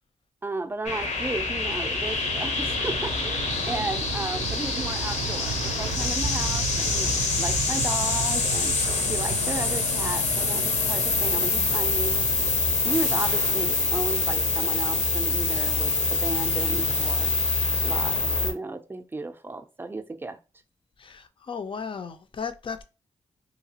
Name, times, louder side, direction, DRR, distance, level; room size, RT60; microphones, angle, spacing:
voice 1, 0.4-8.8 9.1-12.3 12.8-17.3 17.8-20.4, right 2 dB, 15° right, 0.5 m, -34 dB
sound 1, 0.8-18.5, left 3 dB, 70° left, 0.8 m, -26 dB
Fixed-wing aircraft airplane, 0.9-18.3, right 5 dB, 80° right, 0.4 m, -36 dB
voice 2, 21.0-22.8, left 6 dB, 45° left, 0.5 m, -35 dB
2.9 x 2.3 x 2.8 m
cardioid pair, 65°, 13 cm